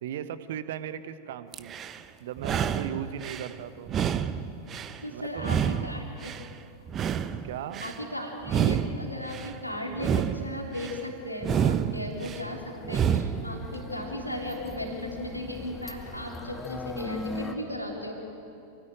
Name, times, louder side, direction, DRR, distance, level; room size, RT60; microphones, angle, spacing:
voice 1, 0.0-1.8 2.2-3.9 5.1-5.9 7.4-7.8, right 10 dB, 55° right, 12 dB, 1.2 m, -37 dB
sound 1, 1.5-2.0 2.4-3.5 3.9-5.0 5.4-6.5 6.9-8.0 8.4-9.5 9.9-11.0 11.4-12.4 12.8-13.5, right 8 dB, 30° right, 1.0 m, -28 dB
voice 2, 5.0-6.3 7.8-18.1, left 1 dB, 90° left, 0 dB, 3.4 m, -36 dB
sound 2, 11.1-17.5, left 3 dB, 15° left, 2.4 m, -40 dB
27.0 x 19.0 x 9.1 m, 2.7 s
figure-of-eight pair, 90°, 0 cm